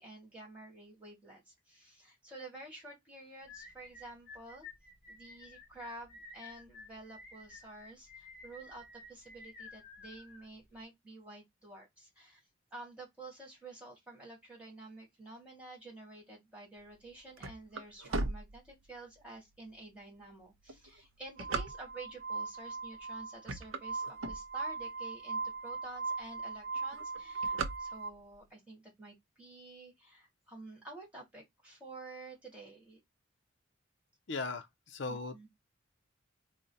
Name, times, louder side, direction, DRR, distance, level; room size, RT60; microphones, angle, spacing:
voice 1, 0.0-4.7 5.1-12.4 12.7-33.0 35.1-35.5, right 2 dB, 5° right, 1.9 m, -50 dB
sound 1, 3.5-10.8, left 3 dB, 45° left, 1.0 m, -53 dB
sound 2, 16.9-19.2 19.8-19.9 20.5-22.2 22.9-23.1 23.4-24.9 25.4-25.5 25.7-25.8 26.1-26.5 26.7-28.4, right 3 dB, 85° right, 0.6 m, -38 dB
Glass, 21.4-28.1, right 4 dB, 45° right, 0.3 m, -39 dB
voice 2, 34.3-35.5, left 3 dB, 60° left, 0.5 m, -39 dB
3.8 x 2.1 x 4.0 m
head